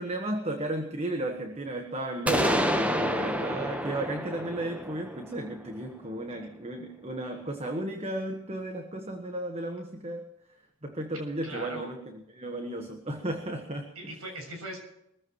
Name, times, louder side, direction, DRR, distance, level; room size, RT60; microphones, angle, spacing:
voice 1, 0.0-10.3 10.8-14.1, right 1 dB, 30° right, 4 dB, 1.3 m, -34 dB
sound 1, 2.3-6.1, equal, 5° right, 1.1 m, -29 dB
voice 2, 11.4-11.9 14.0-14.8, right 1 dB, 90° right, 3 dB, 7.1 m, -39 dB
22.5 x 15.0 x 3.1 m, 0.79 s
head